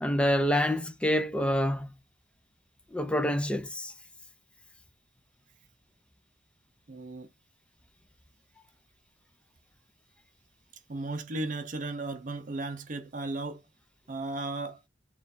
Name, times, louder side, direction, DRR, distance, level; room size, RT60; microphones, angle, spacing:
voice 1, 0.0-1.9 2.9-3.9, equal, 5° left, 0.4 m, -27 dB
voice 2, 6.9-7.3 10.9-13.6 14.1-14.8, right 2 dB, 45° right, 0.6 m, -35 dB
3.5 x 2.4 x 4.2 m
head